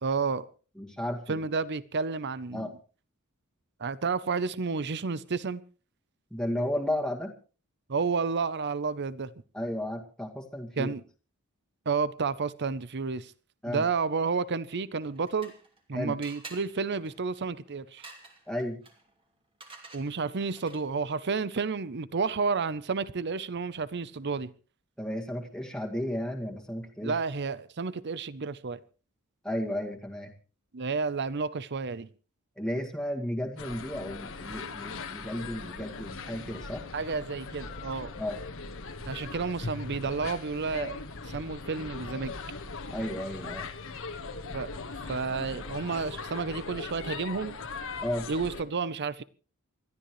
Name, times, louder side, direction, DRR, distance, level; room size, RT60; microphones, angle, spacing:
voice 1, 0.0-0.4 1.3-2.7 3.8-5.6 7.9-9.3 10.8-11.0 11.9-13.3 13.7-15.5 15.9-18.1 19.9-24.5 27.0-28.8 30.7-32.1 36.9-38.1 39.1-41.0 41.3-42.3 44.5-44.7 45.1-47.6 48.3-49.2, right 4 dB, 55° right, 0.7 m, -31 dB
voice 2, 0.8-1.4 2.5-2.7 6.3-7.3 9.5-10.9 13.6-13.8 15.9-16.2 18.5-18.8 25.0-27.2 29.4-30.3 32.6-36.8 38.2-38.4 42.9-43.7 48.0-48.3, left 1 dB, 5° left, 2.1 m, -33 dB
sound 1, 14.9-15.8 16.2-21.0, right 3 dB, 25° right, 2.7 m, -50 dB
sound 2, 33.6-48.6, left 4 dB, 65° left, 1.5 m, -40 dB
28.5 x 13.0 x 3.2 m
head